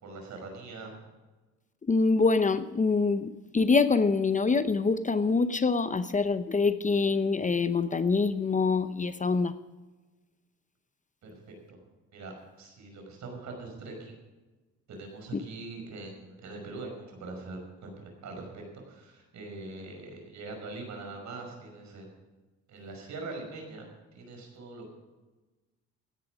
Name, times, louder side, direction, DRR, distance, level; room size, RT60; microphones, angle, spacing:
voice 1, 0.0-1.0 11.2-11.3 11.7-11.8 12.1-14.2 14.9-22.1 22.7-24.9, right 3 dB, 70° right, 3 dB, 5.6 m, -42 dB
voice 2, 1.9-9.5 15.3-15.4, left 4 dB, 25° left, 12 dB, 0.8 m, -25 dB
16.0 x 10.5 x 5.1 m, 1.2 s
cardioid pair, 90°, 30 cm